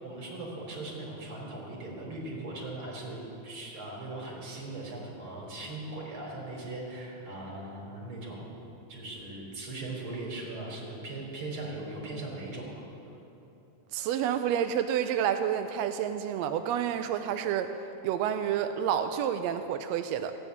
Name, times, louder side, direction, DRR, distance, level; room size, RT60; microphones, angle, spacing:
voice 1, 0.0-8.6 8.9-12.8, right 2 dB, 40° right, -3 dB, 4.4 m, -39 dB
voice 2, 13.9-17.7 18.0-20.3, right 9 dB, 80° right, 8 dB, 1.6 m, -29 dB
15.0 x 9.2 x 9.5 m, 2.9 s
omnidirectional pair, 3.5 m